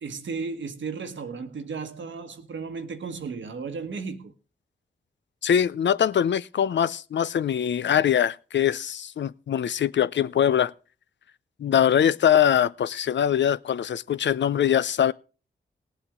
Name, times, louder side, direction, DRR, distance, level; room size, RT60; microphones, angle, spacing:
voice 1, 0.0-4.3, right 5 dB, 75° right, 1.4 m, -34 dB
voice 2, 5.4-10.7 11.6-15.1, left 9 dB, 70° left, 0.5 m, -22 dB
18.0 x 8.3 x 3.7 m
cardioid pair, 50°, 20 cm